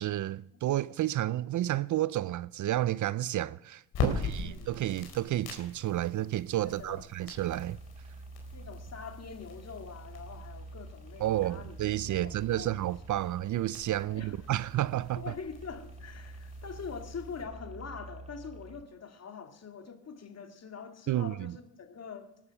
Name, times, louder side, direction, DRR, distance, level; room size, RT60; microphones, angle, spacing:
voice 1, 0.0-7.8 11.2-15.2 21.1-21.6, right 14 dB, 50° right, 0.5 m, -31 dB
sound 1, 3.9-17.4, left 4 dB, 65° left, 4.3 m, -42 dB
voice 2, 4.0-4.8 6.6-7.1 8.5-11.8 12.1-12.8 14.0-14.3 15.2-22.3, left 5 dB, 40° left, 2.4 m, -44 dB
sound 2, 7.3-18.8, right 3 dB, 15° right, 1.5 m, -48 dB
19.5 x 12.5 x 5.9 m
supercardioid pair, 75°, 39 cm